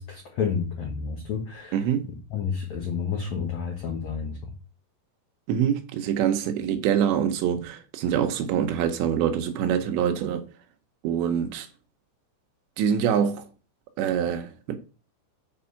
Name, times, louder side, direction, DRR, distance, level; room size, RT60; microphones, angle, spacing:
voice 1, 0.0-4.5, left 6 dB, 85° left, 1.5 m, -30 dB
voice 2, 1.7-2.1 5.5-10.5 11.0-11.7 12.8-13.4 14.0-14.8, right 8 dB, 80° right, 3.0 m, -25 dB
7.7 x 4.8 x 5.7 m
omnidirectional pair, 5.4 m